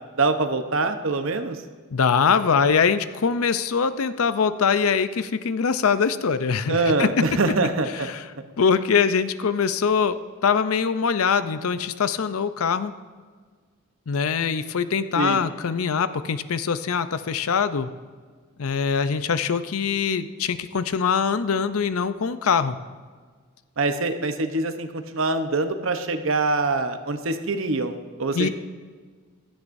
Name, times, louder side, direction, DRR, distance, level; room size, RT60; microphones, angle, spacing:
voice 1, 0.2-1.6 6.7-8.1 8.4-8.5 15.1-15.4 23.8-28.5, right 3 dB, 65° right, 7 dB, 0.9 m, -24 dB
voice 2, 1.9-7.1 7.9-8.2 8.6-12.9 14.1-17.9 18.6-22.8 28.3-28.5, left 6 dB, 85° left, 12 dB, 0.6 m, -23 dB
16.0 x 12.5 x 2.6 m, 1.5 s
head